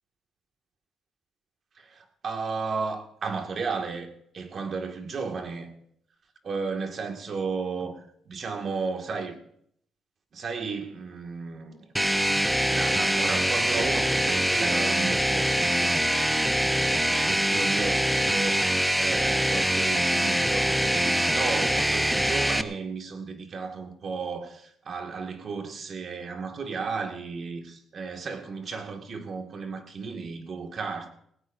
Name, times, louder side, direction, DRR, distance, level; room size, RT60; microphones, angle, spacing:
voice 1, 1.8-5.7 6.5-9.4 10.3-11.9 12.6-16.2 16.6-31.1, right 4 dB, 50° right, 2.1 m, -34 dB
sound 1, 12.0-22.6, right 1 dB, 5° right, 0.7 m, -24 dB
19.5 x 17.0 x 2.7 m
cardioid pair, 90°, 0 cm